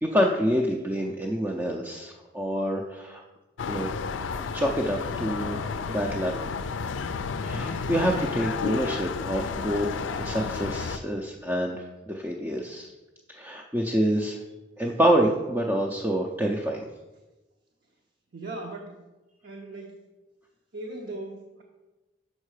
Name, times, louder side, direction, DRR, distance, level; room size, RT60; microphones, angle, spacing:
voice 1, 0.0-3.2 3.7-3.9 4.5-5.6 5.9-6.3 7.4-9.9 10.2-12.9 13.3-14.4 14.8-16.9, equal, 10° right, -1 dB, 0.5 m, -27 dB
sound 1, 3.6-11.0, left 5 dB, 80° left, 0.4 m, -31 dB
voice 2, 18.3-19.0 19.4-20.0 20.7-21.6, right 2 dB, 60° right, 0 dB, 0.8 m, -38 dB
6.5 x 5.4 x 4.8 m, 1.1 s
head